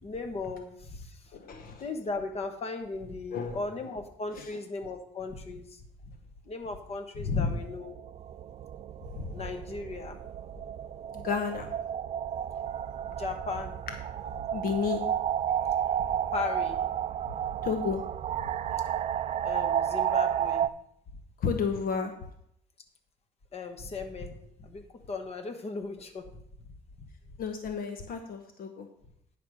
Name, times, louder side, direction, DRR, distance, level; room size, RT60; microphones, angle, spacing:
voice 1, 0.0-1.2 1.8-5.8 6.1-6.2 6.4-7.9 9.3-10.2 13.1-13.8 16.0-16.8 17.2-17.3 19.4-20.7 23.5-24.8 25.1-26.3 27.0-27.1, left 3 dB, 35° left, 6 dB, 1.4 m, -37 dB
voice 2, 1.3-1.8 3.3-3.6 4.3-4.5 7.3-7.5 9.1-9.3 11.1-11.7 14.5-15.0 17.6-18.0 21.4-22.1 27.4-28.9, left 5 dB, 60° left, 6 dB, 1.1 m, -31 dB
sound 1, 7.5-20.7, right 10 dB, 40° right, 0.4 m, -32 dB
10.0 x 5.1 x 6.3 m, 0.74 s
cardioid pair, 110°, 17 cm